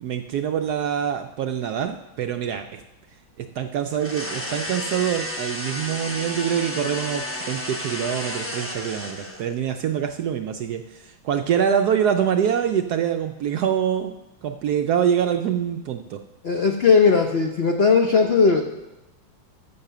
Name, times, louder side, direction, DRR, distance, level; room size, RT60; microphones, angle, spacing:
voice 1, 0.0-2.8 3.6-14.1 14.4-16.2, right 8 dB, 75° right, 7 dB, 0.9 m, -25 dB
sound 1, 3.9-9.6, left 1 dB, 15° left, 0.4 m, -32 dB
voice 2, 16.4-18.6, left 5 dB, 70° left, 3 dB, 0.6 m, -18 dB
9.7 x 6.6 x 6.7 m, 0.96 s
omnidirectional pair, 2.1 m